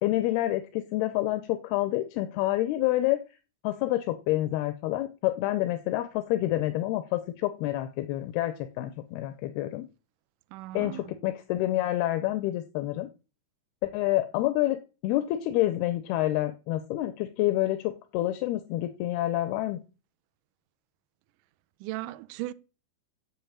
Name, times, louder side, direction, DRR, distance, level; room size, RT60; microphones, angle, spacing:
voice 1, 0.0-3.2 3.6-9.9 10.7-13.1 13.9-19.8, left 15 dB, 85° left, 2.8 m, -28 dB
voice 2, 10.5-11.1 21.8-22.5, right 16 dB, 75° right, 2.0 m, -37 dB
9.1 x 7.2 x 8.8 m
omnidirectional pair, 4.5 m